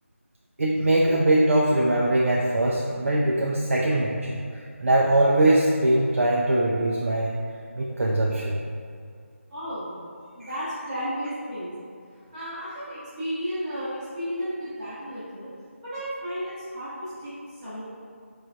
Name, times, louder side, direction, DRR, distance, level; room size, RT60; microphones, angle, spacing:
voice 1, 0.6-4.4 4.8-7.3 7.8-8.6, right 1 dB, 70° right, -3 dB, 0.5 m, -21 dB
voice 2, 9.5-10.0 10.3-11.7 12.3-15.5 15.8-17.8, equal, 5° right, -21 dB, 0.7 m, -33 dB
4.6 x 3.1 x 2.5 m, 2.3 s
figure-of-eight pair, 170°, 8 cm